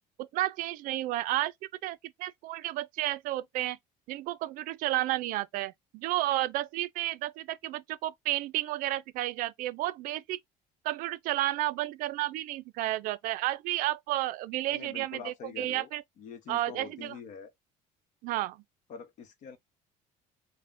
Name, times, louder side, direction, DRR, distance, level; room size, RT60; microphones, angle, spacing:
voice 1, 0.2-1.5 1.8-3.8 4.1-10.4 10.8-16.0 16.5-17.1 18.2-18.6, right 16 dB, 65° right, 0.4 m, -32 dB
voice 2, 14.7-15.9 16.2-17.5 18.9-19.6, left 6 dB, 50° left, 0.8 m, -45 dB
5.4 x 2.1 x 2.5 m
cardioid pair, 160°, 16 cm